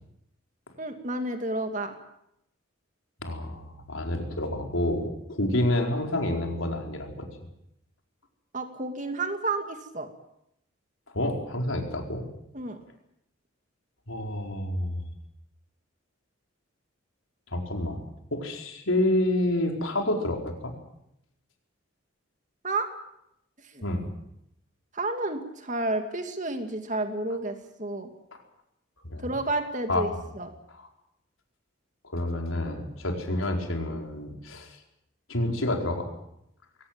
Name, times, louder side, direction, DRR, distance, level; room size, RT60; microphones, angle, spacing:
voice 1, 0.8-1.9 8.5-10.1 12.5-12.8 22.6-22.9 23.7-23.8 24.9-28.1 29.2-30.5, right 2 dB, 35° right, 6 dB, 2.4 m, -31 dB
voice 2, 3.2-7.3 11.1-12.2 14.1-15.0 17.5-18.0 18.3-20.7 23.8-24.1 29.1-29.3 29.9-30.1 30.8-30.9 32.1-34.8 35.3-36.1, left 1 dB, 80° left, 3 dB, 4.7 m, -28 dB
22.0 x 18.5 x 8.9 m, 0.80 s
head